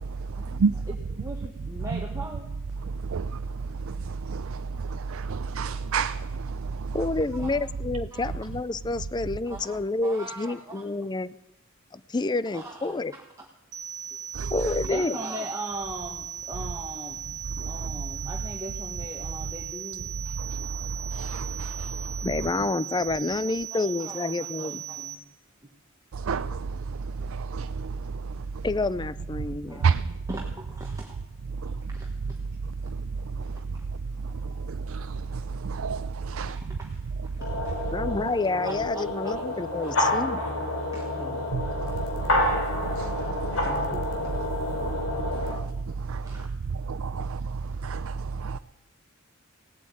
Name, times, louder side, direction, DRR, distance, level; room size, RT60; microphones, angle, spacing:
voice 1, 0.4-2.5 7.4-7.6 8.1-8.3 9.5-10.8 12.5-12.9 14.8-17.2 17.6-20.1 23.5-25.2 29.7-30.0 30.3-31.2 31.6-32.1 34.4-34.5 36.3-36.9 37.6-37.9 38.6-39.3 39.8-40.5 40.9-41.4 43.6-44.1 46.2-46.5, right 1 dB, 15° right, 1.5 m, -40 dB
voice 2, 3.1-3.4 3.9-7.0 14.4-14.5 20.4-20.5 21.1-22.1 26.1-26.8 27.2-28.0 29.8-30.0 31.6-31.7 34.7-36.6 41.5-42.0 42.3-42.4 42.8-43.8 45.3-45.7 46.0-46.2 46.9-48.6, right 5 dB, 85° right, 0.5 m, -30 dB
voice 3, 6.9-11.3 11.9-13.1 14.5-15.2 22.2-24.8 28.6-29.9 37.9-40.4, left 3 dB, 20° left, 0.4 m, -28 dB
sound 1, 13.7-25.1, right 9 dB, 40° right, 1.6 m, -38 dB
sound 2, 37.4-45.5, left 1 dB, 80° left, 3.2 m, -29 dB
17.5 x 8.2 x 8.5 m
head